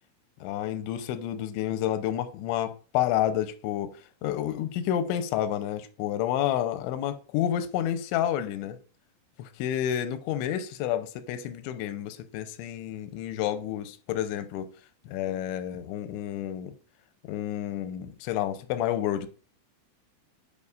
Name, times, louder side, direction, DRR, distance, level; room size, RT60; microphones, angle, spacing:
voice 1, 0.4-8.8 9.4-14.7 15.1-16.7 17.2-19.3, left 11 dB, 90° left, 3.0 m, -30 dB
9.5 x 4.9 x 2.4 m
omnidirectional pair, 5.2 m